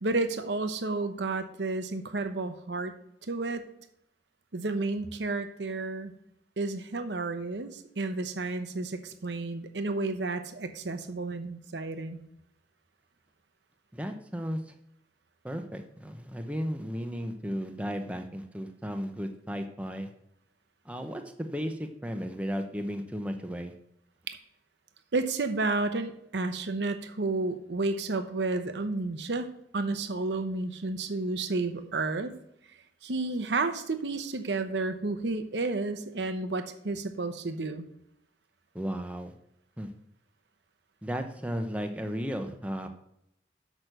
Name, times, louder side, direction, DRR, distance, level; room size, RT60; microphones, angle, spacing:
voice 1, 0.0-2.9 3.3-3.7 4.5-6.1 6.6-12.2 24.3-24.4 25.1-29.5 29.7-32.3 33.0-37.9, right 3 dB, 75° right, 8 dB, 0.8 m, -31 dB
voice 2, 13.9-14.7 15.4-20.1 20.8-23.7 38.7-39.3 39.8-39.9 41.0-42.9, equal, 5° right, 5 dB, 0.7 m, -34 dB
6.2 x 6.1 x 6.7 m, 0.77 s
head